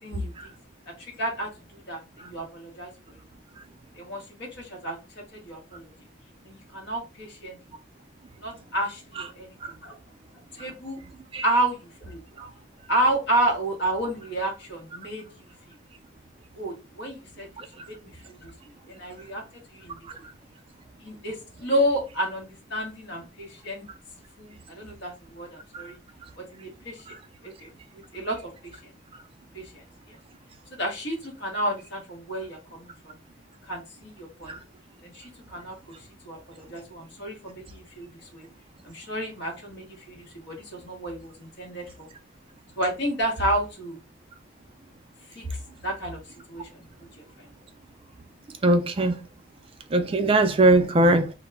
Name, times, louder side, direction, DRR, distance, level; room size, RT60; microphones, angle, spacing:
voice 1, 0.0-0.5 0.9-3.2 3.9-5.8 6.4-7.6 8.4-10.0 10.5-11.0 11.4-12.2 12.9-15.8 16.5-17.5 17.9-18.5 18.9-19.4 19.7-20.0 21.0-23.9 24.4-26.0 26.4-27.1 27.4-28.9 29.5-30.2 30.7-33.2 33.7-34.6 35.0-38.5 38.8-42.1 42.8-44.0 45.3-45.6 45.8-46.2 46.5-46.8 47.2-47.5, right 1 dB, 60° left, 0.9 m, -31 dB
voice 2, 17.6-17.9 25.7-25.9 27.1-27.2 34.5-34.6 48.6-49.2 49.9-51.3, right 2 dB, 30° right, 0.3 m, -21 dB
2.2 x 2.0 x 3.3 m
head